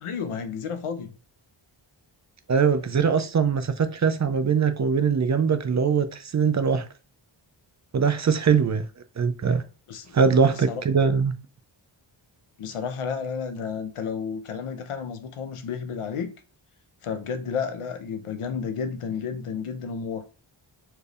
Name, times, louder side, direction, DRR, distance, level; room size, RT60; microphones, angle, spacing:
voice 1, 0.0-1.1 9.9-10.2 10.5-10.8 12.6-16.3 17.0-20.3, left 6 dB, 90° left, 0.8 m, -32 dB
voice 2, 2.5-6.9 7.9-8.8 9.2-9.6 10.1-11.3, right 6 dB, 40° right, 0.4 m, -22 dB
4.5 x 3.3 x 2.4 m
wide cardioid pair, 80°, 49 cm